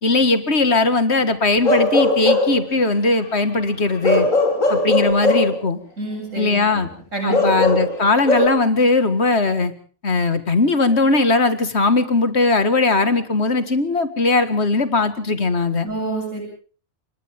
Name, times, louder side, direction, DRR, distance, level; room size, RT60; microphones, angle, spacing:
voice 1, 0.0-4.3 4.7-5.8 6.4-6.9 7.2-9.7 10.0-15.9, left 3 dB, 55° left, 11 dB, 2.2 m, -19 dB
Bark / Livestock farm animals working animals, 1.6-2.6 4.0-5.6 7.3-8.5, left 2 dB, 80° left, 5.8 m, -18 dB
voice 2, 6.0-7.7 15.8-16.4, right 2 dB, 75° right, 1 dB, 8.1 m, -28 dB
29.5 x 25.0 x 3.6 m, 0.41 s
omnidirectional pair, 1.4 m